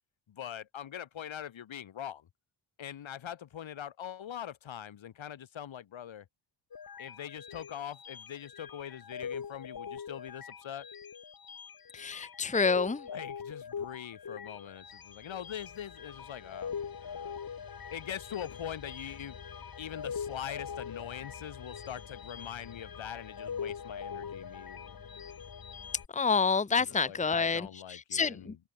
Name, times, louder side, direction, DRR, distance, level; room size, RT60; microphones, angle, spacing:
voice 1, 0.3-2.3 2.8-6.2 7.0-10.9 13.1-17.4 17.9-19.3 19.8-25.0 26.8-28.6, left 10 dB, 75° left, 3.0 m, -43 dB
sound 1, 6.7-26.1, left 7 dB, 50° left, 2.4 m, -43 dB
voice 2, 11.9-13.0 26.1-28.5, left 5 dB, 15° left, 1.0 m, -28 dB
cardioid pair, 85°, 47 cm